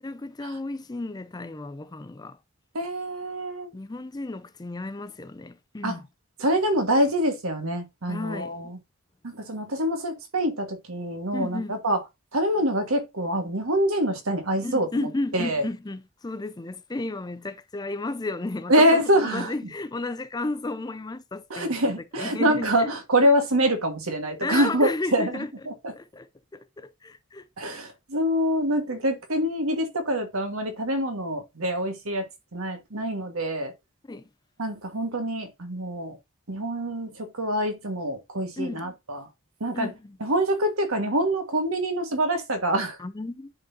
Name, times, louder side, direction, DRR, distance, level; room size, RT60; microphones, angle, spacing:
voice 1, 0.0-2.4 3.7-6.1 8.1-8.7 11.3-11.8 14.6-22.9 24.4-25.5 25.9-27.5 34.0-34.3 38.6-38.9 39.7-40.2 43.0-43.5, left 2 dB, 20° left, 0.4 m, -33 dB
voice 2, 2.7-3.7 5.8-5.9 6.4-8.8 9.2-12.0 12.3-15.1 15.3-15.6 18.7-19.5 21.5-25.3 25.6-25.9 27.6-33.7 34.6-36.2 36.5-39.2 39.6-39.9 40.2-43.0, equal, 80° right, 1.6 m, -25 dB
10.5 x 4.0 x 2.7 m
head